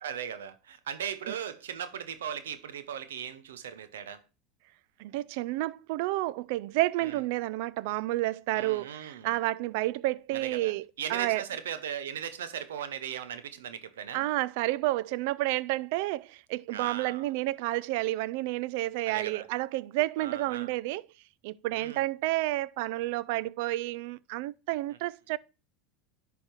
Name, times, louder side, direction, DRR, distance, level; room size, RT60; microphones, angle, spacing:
voice 1, 0.0-4.2 7.0-7.2 8.5-9.4 10.3-10.7 11.0-14.2 16.7-17.3 19.1-19.5 20.2-20.7 21.7-22.0, right 8 dB, 90° right, 0.8 m, -38 dB
voice 2, 5.0-10.8 11.1-11.4 14.1-21.0 21.4-25.4, right 17 dB, 70° right, 0.3 m, -30 dB
10.5 x 3.6 x 4.4 m
hypercardioid pair, 100°, 0 cm